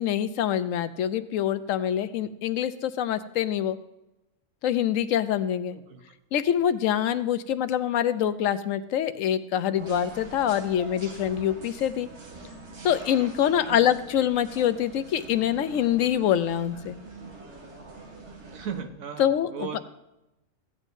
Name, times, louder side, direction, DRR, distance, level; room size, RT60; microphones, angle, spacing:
voice 1, 0.0-3.8 4.6-5.8 6.3-12.1 12.8-16.9 19.2-19.7, left 10 dB, 80° left, 12 dB, 1.0 m, -25 dB
voice 2, 5.7-6.0 13.6-13.8 18.5-19.8, right 7 dB, 85° right, 6 dB, 1.4 m, -37 dB
sound 1, 9.8-18.8, right 3 dB, 60° right, 1.5 m, -44 dB
15.0 x 9.1 x 2.6 m, 0.94 s
omnidirectional pair, 1.4 m